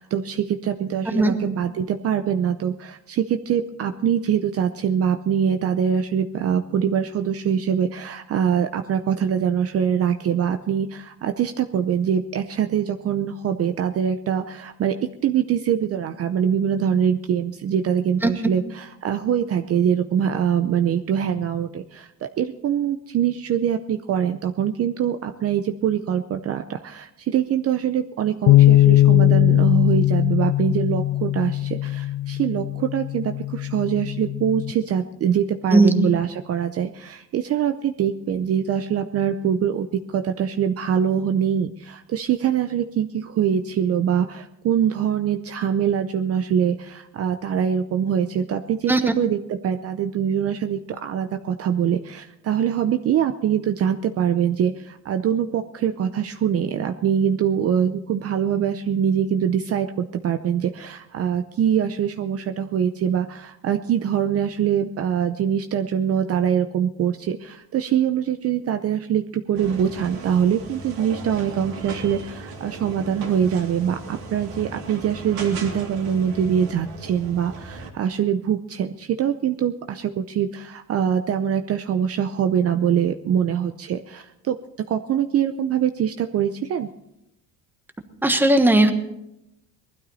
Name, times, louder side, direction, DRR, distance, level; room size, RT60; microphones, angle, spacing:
voice 1, 0.0-14.9 15.2-84.6 84.9-86.9, right 8 dB, 40° right, 7 dB, 0.7 m, -23 dB
sound 1, 28.5-34.7, left 14 dB, 55° left, 0.5 m, -19 dB
sound 2, 69.5-77.9, right 3 dB, 75° right, 3.0 m, -37 dB
voice 2, 88.2-88.9, right 1 dB, 5° right, 7 dB, 1.2 m, -16 dB
20.0 x 12.5 x 4.1 m, 0.84 s
cardioid pair, 130°, 36 cm